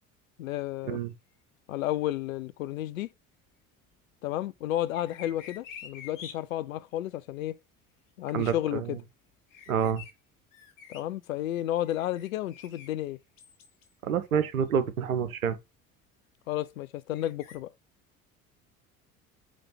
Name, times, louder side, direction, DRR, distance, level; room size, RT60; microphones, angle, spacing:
voice 1, 0.4-1.0 1.7-3.1 4.2-7.6 8.2-9.0 10.9-13.2 16.5-17.7, left 13 dB, 75° left, 0.5 m, -32 dB
sound 1, 4.9-6.3 9.5-10.1 10.5-11.0 11.5-12.9 13.4-13.9 14.6-14.7 17.1-17.6, left 7 dB, 50° left, 1.6 m, -47 dB
voice 2, 8.3-9.0 9.7-10.0 14.0-15.6, right 7 dB, 85° right, 0.7 m, -28 dB
5.1 x 3.3 x 5.6 m
figure-of-eight pair, 65°, 41 cm